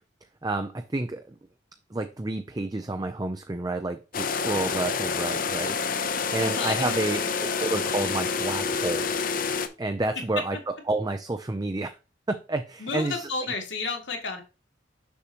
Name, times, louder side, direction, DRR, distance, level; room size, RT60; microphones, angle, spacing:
voice 1, 0.4-1.3 1.9-5.8 6.3-9.1 9.8-11.9 12.3-13.3, right 2 dB, 20° right, 0.5 m, -30 dB
sound 1, 4.1-9.7, left 5 dB, 45° left, 0.7 m, -28 dB
voice 2, 6.4-7.0 12.8-14.4, left 3 dB, 70° left, 2.2 m, -31 dB
6.8 x 6.5 x 2.9 m
head